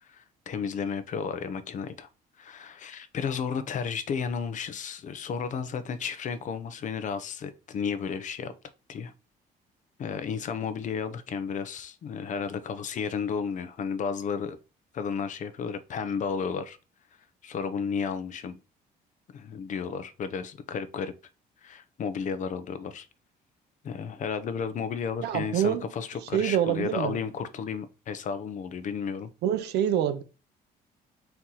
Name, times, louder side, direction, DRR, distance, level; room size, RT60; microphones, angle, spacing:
voice 1, 0.0-2.1 2.4-8.5 8.9-9.1 10.0-14.6 14.9-16.8 17.4-18.6 19.3-21.1 21.6-23.1 23.8-29.3, left 6 dB, 50° left, 0.7 m, -33 dB
voice 2, 25.2-25.8 26.3-27.2 29.4-30.2, right 10 dB, 80° right, 0.7 m, -26 dB
4.4 x 2.9 x 3.8 m
cardioid pair, 110°, 17 cm